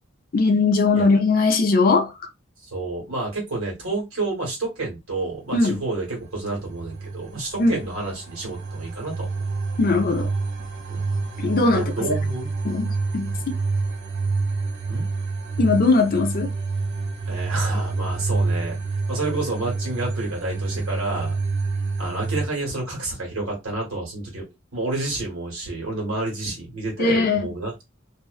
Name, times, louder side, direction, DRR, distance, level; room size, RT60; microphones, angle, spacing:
voice 1, 0.3-2.1 5.5-5.8 7.6-7.8 9.8-10.3 11.4-12.1 12.6-13.6 15.6-16.5 27.0-27.5, left 3 dB, 45° left, 0.5 m, -20 dB
voice 2, 2.7-9.5 10.9-11.0 11.7-12.5 14.9-15.0 17.3-18.8 19.1-21.4 22.0-24.4 24.7-27.8, right 2 dB, 80° right, 1.4 m, -29 dB
sound 1, 6.1-22.5, right 3 dB, 55° right, 0.6 m, -28 dB
2.6 x 2.2 x 2.3 m
head